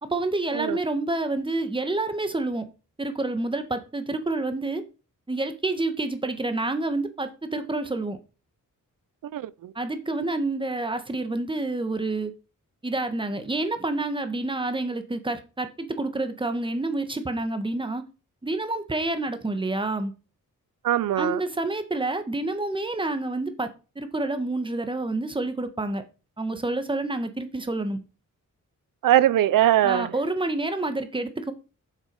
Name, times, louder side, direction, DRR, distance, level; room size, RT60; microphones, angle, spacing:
voice 1, 0.0-2.6 3.0-4.8 5.3-8.2 9.7-12.3 12.8-18.0 18.4-20.1 21.2-23.7 23.9-26.0 26.4-28.0 29.8-31.5, right 2 dB, 15° right, 1.3 m, -28 dB
voice 2, 9.3-9.7 20.8-21.4 29.0-30.1, right 12 dB, 90° right, 0.5 m, -21 dB
7.4 x 6.3 x 5.2 m
wide cardioid pair, 130°, 32 cm